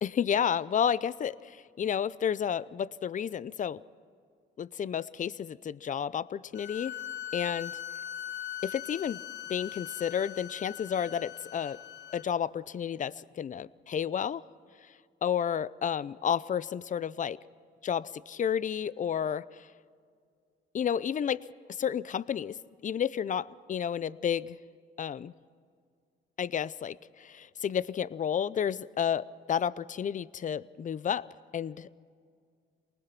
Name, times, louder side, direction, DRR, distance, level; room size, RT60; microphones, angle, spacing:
voice 1, 0.0-3.8 4.6-7.0 7.3-7.7 8.6-9.2 9.5-11.8 12.1-14.4 15.2-17.4 17.8-19.7 20.7-21.4 21.8-22.6 22.8-24.6 25.0-25.3 26.4-31.3 31.5-31.9, left 8 dB, 40° left, 19 dB, 0.5 m, -31 dB
sound 1, 6.5-12.2, left 11 dB, 65° left, 0.9 m, -41 dB
24.0 x 19.5 x 6.0 m, 2.2 s
cardioid pair, 90°, 20 cm